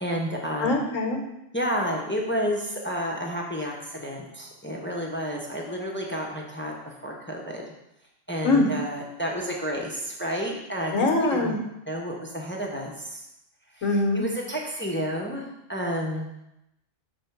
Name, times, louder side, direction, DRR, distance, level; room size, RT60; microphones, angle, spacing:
voice 1, 0.0-0.7 1.5-7.6 8.3-10.9 11.3-11.6 11.9-13.2 13.8-16.3, equal, 10° left, -1 dB, 0.7 m, -31 dB
voice 2, 0.6-1.2 8.4-8.7 10.9-11.6 13.8-14.3, left 2 dB, 80° left, 2 dB, 1.5 m, -22 dB
6.8 x 3.8 x 5.8 m, 0.86 s
omnidirectional pair, 1.3 m